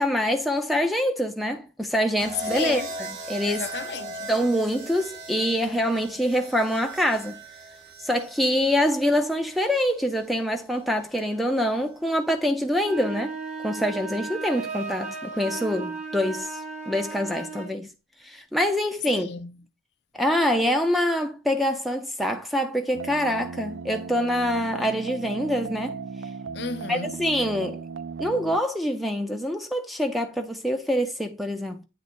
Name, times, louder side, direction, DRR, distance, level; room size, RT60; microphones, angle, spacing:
voice 1, 0.0-2.8 3.3-3.7 4.3-7.4 8.0-13.3 13.6-16.6 16.9-17.9 18.2-19.3 20.1-26.0 26.9-27.8 28.2-31.8, equal, ahead, 0.6 m, -25 dB
sound 1, 2.2-10.3 11.5-11.9, right 2 dB, 55° right, 2.1 m, -39 dB
voice 2, 2.4-3.0 3.5-4.3 19.1-19.7 26.5-27.2, left 5 dB, 55° left, 0.6 m, -34 dB
sound 2, 12.8-17.8, right 4 dB, 35° right, 1.1 m, -35 dB
sound 3, 22.9-28.6, right 5 dB, 85° right, 0.5 m, -36 dB
8.2 x 3.6 x 4.3 m
head